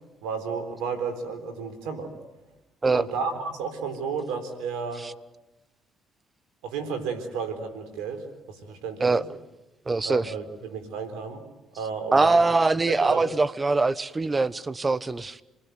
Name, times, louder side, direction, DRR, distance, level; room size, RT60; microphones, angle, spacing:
voice 1, 0.2-2.1 2.9-5.1 6.6-8.2 8.5-9.2 10.0-11.4 11.8-12.4 12.9-13.3, right 5 dB, 85° right, 4.1 m, -32 dB
voice 2, 9.9-10.3 12.1-15.4, right 3 dB, 25° right, 1.1 m, -23 dB
27.5 x 20.5 x 9.4 m
supercardioid pair, 70°, 0 cm